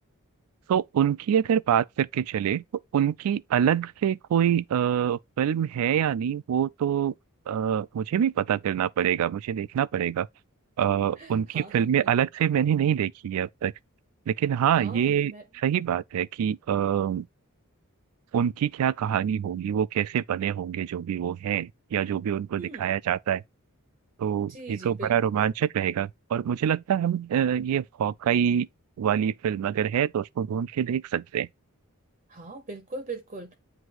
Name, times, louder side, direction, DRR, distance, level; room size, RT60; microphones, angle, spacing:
voice 1, 0.7-2.6 2.9-7.1 7.5-10.3 10.8-13.7 14.3-17.3 18.3-23.4 24.2-28.7 29.0-31.5, right 9 dB, 75° right, 0.3 m, -25 dB
voice 2, 11.2-12.1 14.8-15.4 22.6-22.9 24.4-25.5 32.3-33.6, right 3 dB, 35° right, 0.7 m, -41 dB
7.9 x 2.7 x 4.6 m
head